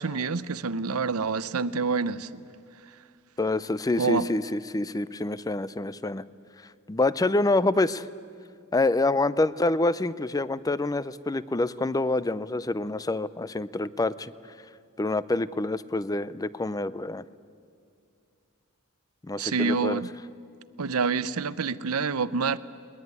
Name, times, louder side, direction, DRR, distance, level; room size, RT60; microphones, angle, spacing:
voice 1, 0.0-2.4 4.0-4.3 19.4-20.1 20.8-22.6, right 4 dB, 80° right, 16 dB, 0.7 m, -27 dB
voice 2, 3.4-6.2 6.9-8.1 8.7-14.3 15.0-17.2 19.2-20.0, left 2 dB, 15° left, 17 dB, 0.5 m, -26 dB
20.5 x 20.0 x 9.5 m, 2.3 s
head